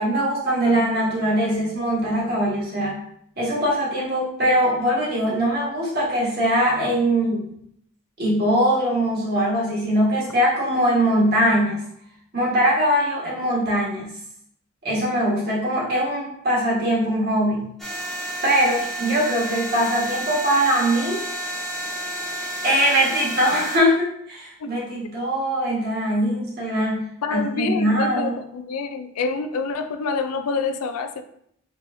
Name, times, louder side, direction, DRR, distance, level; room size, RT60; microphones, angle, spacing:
voice 1, 0.0-3.0 3.4-7.4 8.2-11.8 12.3-14.1 14.8-17.7 18.4-21.2 22.6-27.0 27.3-28.4, equal, 45° right, -5 dB, 1.4 m, -21 dB
sound 1, 17.8-23.8, right 1 dB, ahead, 0.7 m, -30 dB
voice 2, 27.2-31.2, left 4 dB, 90° left, 8 dB, 0.4 m, -27 dB
4.5 x 3.1 x 2.6 m, 0.70 s
head